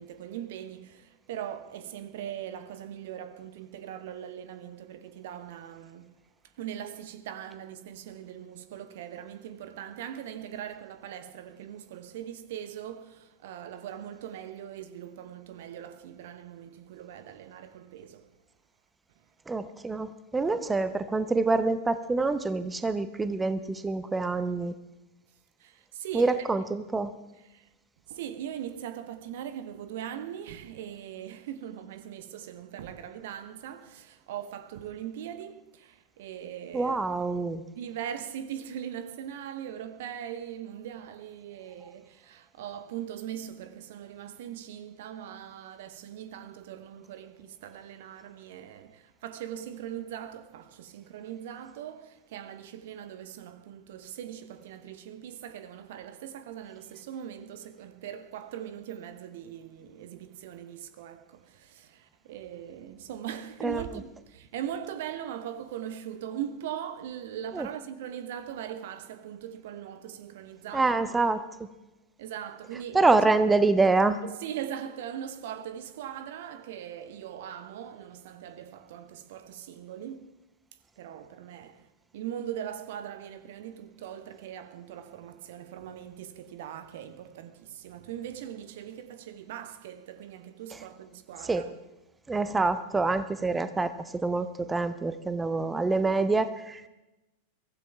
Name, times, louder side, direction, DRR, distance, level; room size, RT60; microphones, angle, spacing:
voice 1, 0.0-6.2 6.6-18.3 25.6-26.5 27.5-27.7 28.1-37.0 37.7-71.2 72.2-73.1 74.2-80.3 81.0-91.7, right 10 dB, 55° right, 1.0 m, -40 dB
voice 2, 19.5-24.7 26.1-27.1 36.7-37.6 63.6-63.9 67.5-67.7 70.7-71.4 72.9-74.2 90.7-90.8 91.4-91.6 92.3-96.9, right 3 dB, 10° right, 0.8 m, -26 dB
23.0 x 15.0 x 3.5 m
figure-of-eight pair, 90°, 0 cm